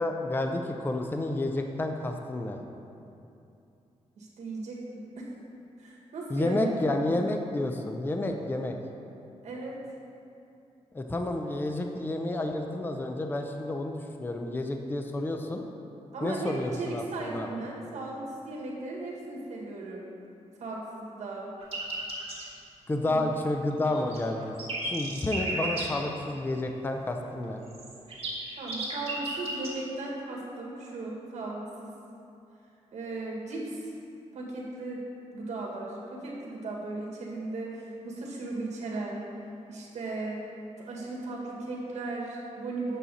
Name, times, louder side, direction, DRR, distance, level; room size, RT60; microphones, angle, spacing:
voice 1, 0.0-2.6 6.3-8.8 10.9-15.6 16.2-17.5 22.9-24.6 24.8-27.6, left 2 dB, 15° left, 4 dB, 0.5 m, -30 dB
voice 2, 4.2-5.3 5.8-6.9 9.4-9.8 16.1-20.0 20.6-21.5 23.0-23.3 28.6-31.9 32.9-33.9 34.3-35.0 35.3-39.3 39.7-40.5 40.8-43.0, right 2 dB, 70° right, -3 dB, 1.9 m, -36 dB
sound 1, 21.6-22.4 23.7-25.9 27.7-29.7, right 2 dB, 55° right, 2.1 m, -34 dB
8.3 x 7.3 x 4.1 m, 2.7 s
wide cardioid pair, 125°, 12 cm